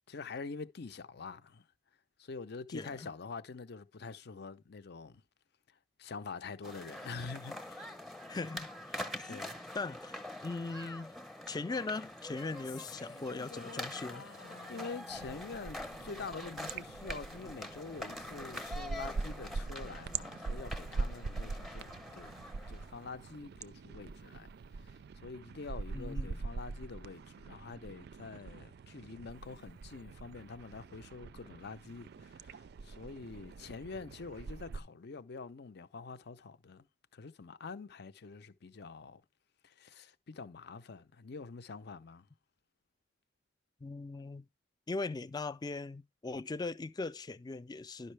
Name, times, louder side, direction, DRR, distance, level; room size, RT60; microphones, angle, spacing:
voice 1, 0.1-1.7 2.2-5.2 5.7-7.9 8.9-9.5 14.7-22.4 22.7-24.5 24.8-36.9 37.1-39.2 39.6-42.3, left 4 dB, 60° left, 0.6 m, -46 dB
voice 2, 2.7-3.1 8.3-8.7 9.1-11.1 11.5-14.3 25.9-26.4 43.8-44.5 44.9-48.1, left 3 dB, 20° left, 0.4 m, -40 dB
sound 1, 6.6-23.1, left 1 dB, ahead, 0.8 m, -45 dB
sound 2, 12.5-16.9, left 5 dB, 80° left, 1.0 m, -53 dB
sound 3, 15.1-34.8, right 4 dB, 60° right, 0.4 m, -43 dB
11.0 x 5.5 x 3.3 m
head